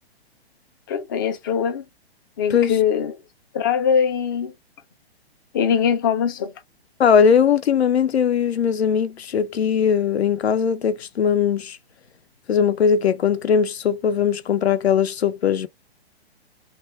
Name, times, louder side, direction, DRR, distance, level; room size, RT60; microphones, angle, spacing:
voice 1, 0.9-1.8 2.4-3.2 3.5-4.5 5.5-6.5, left 7 dB, 20° left, 0.3 m, -22 dB
voice 2, 7.0-11.8 12.5-15.7, left 7 dB, 75° left, 0.6 m, -19 dB
2.4 x 2.2 x 3.0 m
figure-of-eight pair, 125°, 32 cm